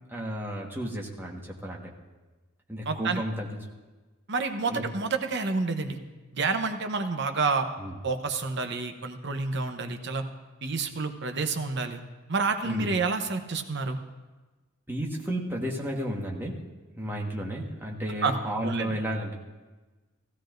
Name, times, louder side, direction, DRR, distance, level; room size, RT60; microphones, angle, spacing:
voice 1, 0.1-1.9 2.7-3.5 4.7-4.8 7.8-8.0 12.6-12.9 14.9-16.6 17.0-19.3, equal, 10° right, -2 dB, 1.4 m, -32 dB
voice 2, 2.9-3.2 4.3-6.0 6.3-7.7 8.0-10.2 10.6-12.0 12.3-14.0 18.2-18.4 18.6-19.0, right 4 dB, 55° right, 6 dB, 0.9 m, -29 dB
16.5 x 15.0 x 2.6 m, 1.2 s
head